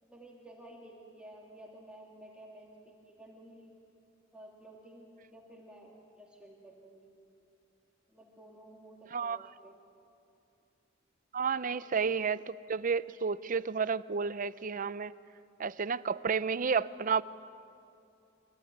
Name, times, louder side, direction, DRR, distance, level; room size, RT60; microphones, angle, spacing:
voice 1, 0.0-3.7 4.3-7.1 8.1-9.8 11.5-11.8, right 1 dB, 5° right, -2 dB, 2.6 m, -53 dB
voice 2, 11.3-15.1 15.6-17.2, right 5 dB, 45° right, 16 dB, 0.6 m, -31 dB
24.5 x 24.5 x 9.4 m, 2.6 s
head